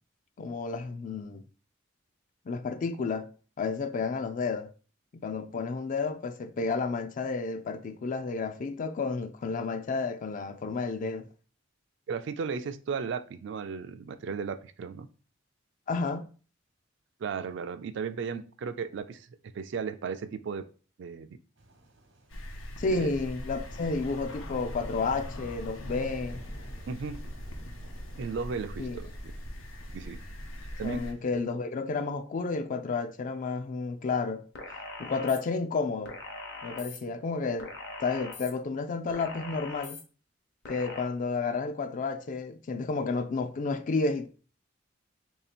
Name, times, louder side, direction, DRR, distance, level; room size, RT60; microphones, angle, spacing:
voice 1, 0.4-1.4 2.5-3.3 3.6-4.7 5.1-11.3 15.9-16.3 22.8-26.4 28.8-29.0 30.8-34.4 35.0-36.2 36.6-37.7 38.0-40.0 40.7-44.3, left 4 dB, 40° left, 0.3 m, -31 dB
voice 2, 12.1-15.1 17.2-19.3 19.5-20.6 21.0-21.3 22.9-23.1 26.9-27.2 28.1-29.3 29.9-30.2 30.8-31.1, right 5 dB, 65° right, 0.3 m, -35 dB
sound 1, 21.6-31.4, right 1 dB, 80° right, 0.9 m, -53 dB
sound 2, 22.3-31.1, equal, 90° left, 0.7 m, -41 dB
sound 3, 34.5-35.4 36.0-37.0 37.6-38.5 39.1-40.0 40.6-41.0, left 3 dB, 60° left, 0.8 m, -41 dB
3.2 x 2.7 x 4.1 m
head